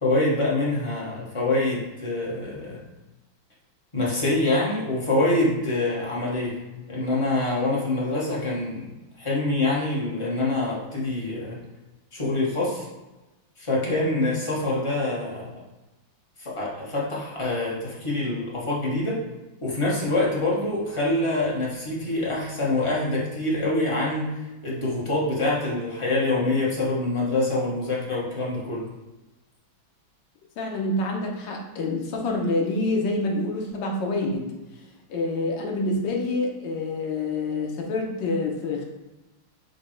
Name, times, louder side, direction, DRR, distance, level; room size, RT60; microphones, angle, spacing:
voice 1, 0.0-2.8 3.9-6.6 6.9-11.6 12.1-12.9 13.6-15.6 16.4-19.2 19.6-28.9, left 2 dB, 30° left, -5 dB, 0.6 m, -25 dB
voice 2, 30.6-34.5 35.1-38.8, left 2 dB, 70° left, 1 dB, 1.4 m, -27 dB
5.1 x 2.2 x 4.4 m, 1.1 s
omnidirectional pair, 2.1 m